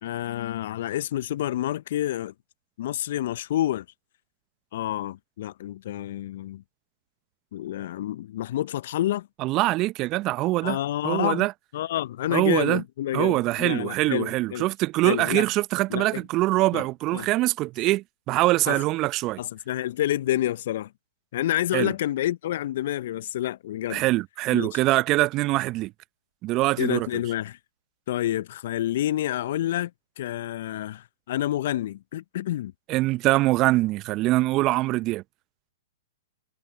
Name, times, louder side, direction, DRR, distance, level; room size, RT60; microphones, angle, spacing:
voice 1, 0.0-2.3 2.8-3.8 4.7-6.6 7.5-9.3 10.6-11.5 11.7-14.7 15.0-15.5 15.9-16.2 16.7-16.8 17.1-17.3 18.6-18.8 19.4-20.9 21.3-24.1 24.5-24.8 26.8-27.6 28.1-29.9 30.2-32.7, left 13 dB, 55° left, 0.8 m, -28 dB
voice 2, 9.4-10.8 11.0-11.5 12.3-12.8 13.1-19.4 21.7-21.9 23.9-25.9 26.4-27.1 32.9-35.2, right 18 dB, 35° right, 0.8 m, -23 dB
figure-of-eight pair, 110°, 0 cm